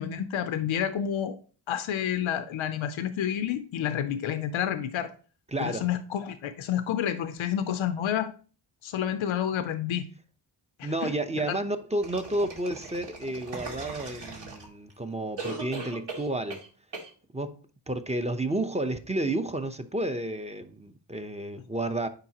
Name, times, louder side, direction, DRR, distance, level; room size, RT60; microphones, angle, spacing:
voice 1, 0.0-1.4 1.7-5.1 5.6-8.3 8.8-10.1 10.8-11.1 11.4-11.6, left 9 dB, 85° left, 0.7 m, -29 dB
voice 2, 5.5-5.9 10.8-16.6 17.3-17.6 17.9-22.1, right 1 dB, 15° right, 0.8 m, -31 dB
sound 1, 12.0-14.9 15.4-16.7 16.9-17.1, right 3 dB, 65° right, 2.4 m, -39 dB
8.9 x 5.7 x 2.9 m
cardioid pair, 75°, 45 cm